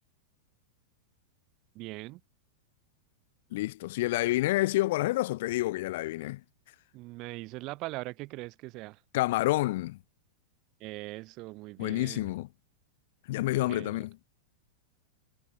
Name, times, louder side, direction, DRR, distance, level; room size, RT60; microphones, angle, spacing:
voice 1, 1.7-2.2 6.9-9.0 10.8-12.3 13.7-14.0, right 21 dB, 40° right, 1.8 m, -41 dB
voice 2, 3.5-6.4 9.1-10.0 11.8-12.5 13.3-14.1, left 18 dB, 60° left, 0.6 m, -28 dB
supercardioid pair, 150°, 0 cm